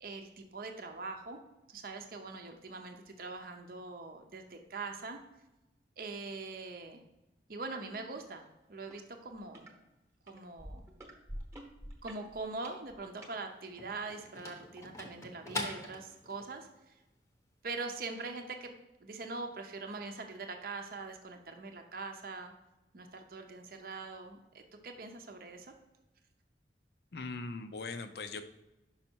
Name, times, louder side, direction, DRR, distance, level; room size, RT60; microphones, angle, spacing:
voice 1, 0.0-1.4 1.7-5.2 6.0-7.0 7.5-9.7 10.3-10.9 12.0-16.9 17.6-18.7 19.0-22.5 22.9-25.7, right 3 dB, 50° right, 4 dB, 0.6 m, -43 dB
sound 1, 8.9-9.0 9.3-9.7 10.3-13.3 14.0-14.1, equal, 15° right, 0.9 m, -47 dB
sound 2, 13.0-16.5, left 2 dB, 15° left, 0.8 m, -43 dB
voice 2, 27.1-28.5, left 3 dB, 60° left, 9 dB, 0.5 m, -40 dB
5.5 x 5.4 x 4.4 m, 0.99 s
head